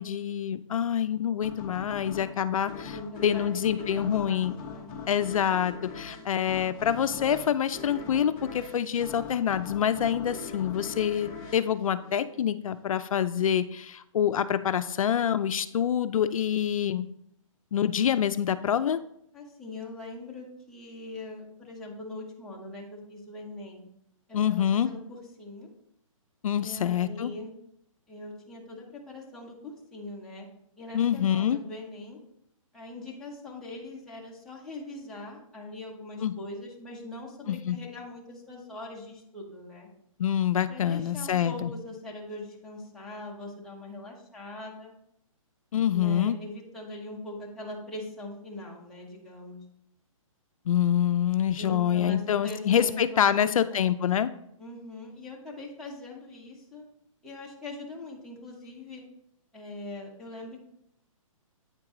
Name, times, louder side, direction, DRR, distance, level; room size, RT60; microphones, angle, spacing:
voice 1, 0.0-3.0 3.2-4.5 5.1-17.1 17.7-19.0 24.3-24.9 26.4-27.3 30.9-31.6 36.2-36.3 37.5-37.8 40.2-41.7 45.7-46.4 50.7-54.3, left 9 dB, 75° left, 12 dB, 0.4 m, -26 dB
sound 1, 1.4-12.7, left 5 dB, 20° left, 0.8 m, -42 dB
voice 2, 2.9-4.9 19.3-23.9 24.3-25.7 26.5-27.5 28.1-30.5 30.8-32.2 32.7-39.9 40.7-44.9 45.9-49.6 51.6-53.9 54.6-56.8 57.2-59.0 59.5-60.6, left 2 dB, ahead, -6 dB, 1.1 m, -41 dB
8.7 x 4.6 x 3.8 m, 0.74 s
hypercardioid pair, 165°, 18 cm